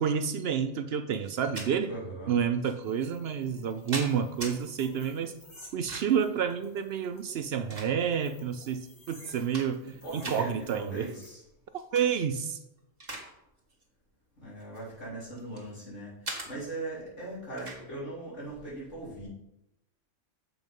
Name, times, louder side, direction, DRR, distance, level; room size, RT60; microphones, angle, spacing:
voice 1, 0.0-1.9 2.3-5.3 5.7-9.8 10.1-11.1 11.7-12.6, right 7 dB, 65° right, 10 dB, 0.7 m, -29 dB
sound 1, 1.2-1.7 2.6-2.7 3.5-4.5 5.6-6.2 7.2-8.3 8.8-8.9 9.3-9.9 10.2-10.4 11.7-12.1 12.5-13.3 13.6-13.8 14.6-15.7 16.2-16.5 17.6-17.8, right 2 dB, 35° right, 1.9 m, -40 dB
voice 2, 1.9-2.4 9.8-11.4 14.4-19.3, right 2 dB, 75° left, -7 dB, 3.8 m, -40 dB
sound 2, 2.8-11.3, left 1 dB, 35° left, 2.4 m, -55 dB
7.1 x 5.7 x 5.3 m, 0.86 s
omnidirectional pair, 1.2 m